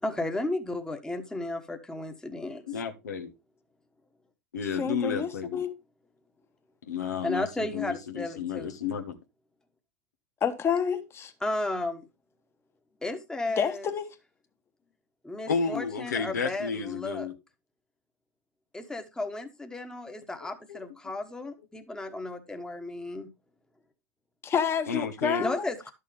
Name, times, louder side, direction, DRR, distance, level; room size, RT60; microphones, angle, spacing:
voice 1, 0.0-2.6 7.2-8.8 11.4-12.1 13.0-13.9 15.2-17.3 18.7-23.3 25.4-25.9, left 2 dB, 5° left, 1.3 m, -34 dB
voice 2, 2.7-3.3 4.5-5.6 6.9-9.2 15.5-17.3 20.7-20.8 24.9-25.4, left 6 dB, 85° left, 1.3 m, -32 dB
voice 3, 4.8-5.7 10.4-11.3 13.6-14.1 24.4-25.7, left 7 dB, 30° left, 1.3 m, -29 dB
11.0 x 6.6 x 3.3 m
hypercardioid pair, 100°, 9 cm